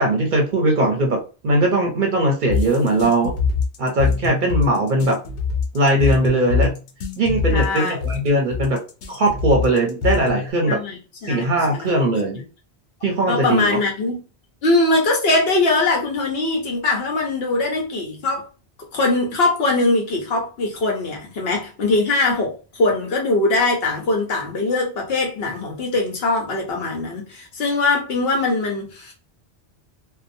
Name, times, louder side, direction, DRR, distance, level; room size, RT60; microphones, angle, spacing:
voice 1, 0.0-3.3 3.8-5.2 5.7-6.7 7.2-8.8 9.1-10.8 11.3-12.4 13.0-13.8, right 1 dB, 55° right, 0.6 m, -19 dB
sound 1, 2.5-10.5, left 5 dB, 90° left, 0.9 m, -23 dB
voice 2, 7.5-8.0 10.7-11.9 13.3-14.2 14.6-18.5 18.9-29.1, left 2 dB, 65° left, 1.0 m, -21 dB
2.7 x 2.1 x 2.6 m
omnidirectional pair, 1.1 m